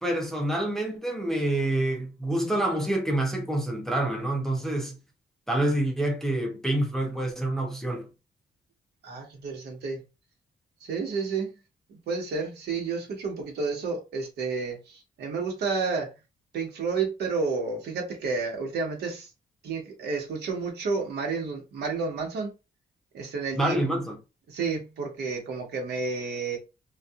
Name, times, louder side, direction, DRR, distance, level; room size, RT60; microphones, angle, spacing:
voice 1, 0.0-5.0 5.5-8.1 23.5-24.2, right 1 dB, 5° left, 0.5 m, -27 dB
voice 2, 9.0-10.0 10.8-11.5 11.9-16.1 16.5-19.3 19.6-22.5 23.1-23.8 24.5-26.6, right 4 dB, 80° right, 1.1 m, -31 dB
2.8 x 2.4 x 2.3 m
wide cardioid pair, 180°, 17 cm